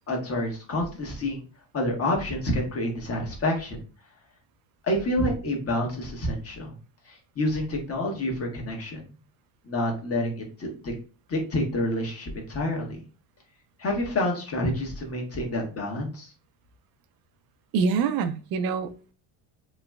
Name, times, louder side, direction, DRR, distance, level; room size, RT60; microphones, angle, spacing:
voice 1, 0.1-1.4 1.7-3.8 4.8-6.7 7.1-9.0 9.6-10.9 11.3-13.0 13.8-16.3, left 1 dB, 30° left, 1.2 m, -28 dB
voice 2, 17.7-19.1, right 5 dB, 50° right, 0.6 m, -26 dB
3.0 x 2.9 x 2.3 m
supercardioid pair, 110°, 46 cm